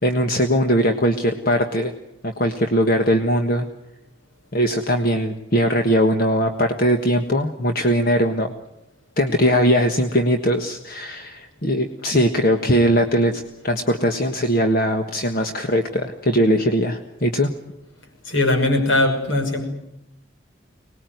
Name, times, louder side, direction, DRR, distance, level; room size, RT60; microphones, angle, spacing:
voice 1, 0.0-1.9 2.2-3.7 4.5-8.5 9.2-17.5, equal, 45° left, 5 dB, 1.5 m, -20 dB
voice 2, 18.3-19.6, left 2 dB, 80° left, 6 dB, 5.8 m, -20 dB
25.0 x 20.0 x 9.4 m, 0.84 s
head